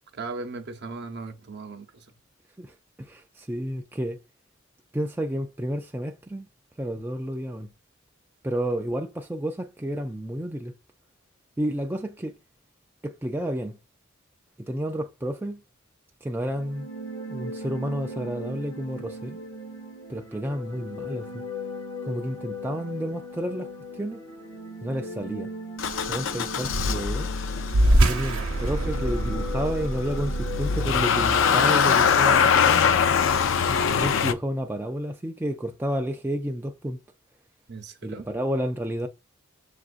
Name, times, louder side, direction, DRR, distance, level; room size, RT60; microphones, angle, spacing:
voice 1, 0.1-2.2 37.7-38.3, right 3 dB, 55° right, 0.7 m, -37 dB
voice 2, 2.6-4.2 4.9-6.5 6.8-7.7 8.4-10.7 11.6-12.3 13.0-13.8 14.7-15.6 16.2-16.9 17.3-19.4 20.1-21.4 22.0-24.2 24.8-25.5 26.1-27.3 28.0-33.0 33.7-37.0 38.0-39.1, equal, 10° right, 0.3 m, -31 dB
Korg Pad Subtle, 16.5-32.2, left 2 dB, 25° left, 1.0 m, -38 dB
Motor vehicle (road) / Engine starting, 25.8-34.3, left 6 dB, 65° left, 0.4 m, -23 dB
sound 1, 27.7-32.6, right 1 dB, 85° right, 0.8 m, -25 dB
7.0 x 2.4 x 2.4 m
head